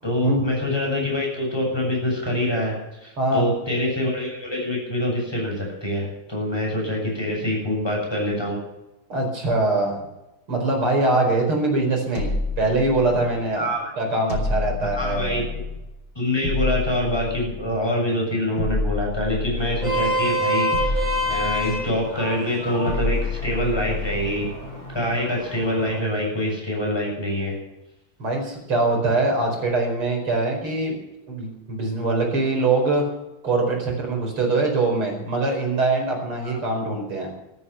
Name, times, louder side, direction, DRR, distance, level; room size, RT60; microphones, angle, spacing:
voice 1, 0.0-8.6 13.6-13.9 14.8-15.4 16.1-24.5 24.9-27.6 36.4-36.6, left 1 dB, 10° left, -2 dB, 7.5 m, -25 dB
voice 2, 3.2-3.5 9.1-10.0 10.5-13.7 14.0-15.4 28.2-31.0 31.3-33.1 33.4-37.3, right 2 dB, 85° right, 1 dB, 5.6 m, -23 dB
sound 1, 12.1-13.5 14.3-15.9 16.4-17.8 18.6-20.2 20.7-22.1 22.9-24.5, left 3 dB, 55° left, 3.6 m, -29 dB
Vehicle horn car horn honking, 19.6-26.0, equal, 60° right, 7.8 m, -28 dB
14.0 x 13.0 x 7.1 m, 0.95 s
omnidirectional pair, 2.3 m